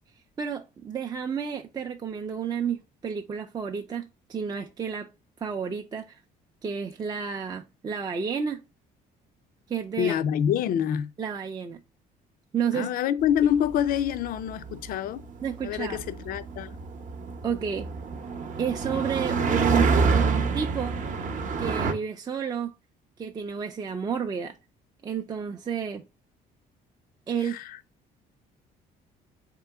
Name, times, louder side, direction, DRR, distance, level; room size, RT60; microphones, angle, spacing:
voice 1, 0.4-5.1 5.4-6.2 6.6-8.6 9.7-10.1 11.2-11.8 12.5-12.9 15.4-16.0 17.4-17.9 18.6-21.0 21.6-22.7 23.2-24.6 25.0-26.0 27.3-27.6, right 7 dB, 25° right, 0.4 m, -31 dB
voice 2, 10.0-11.1 12.7-15.2 15.6-16.8 27.4-27.8, left 9 dB, 60° left, 0.4 m, -26 dB
sound 1, 13.4-21.9, right 4 dB, 50° right, 0.7 m, -27 dB
3.7 x 3.0 x 3.4 m
cardioid pair, 110°, 17 cm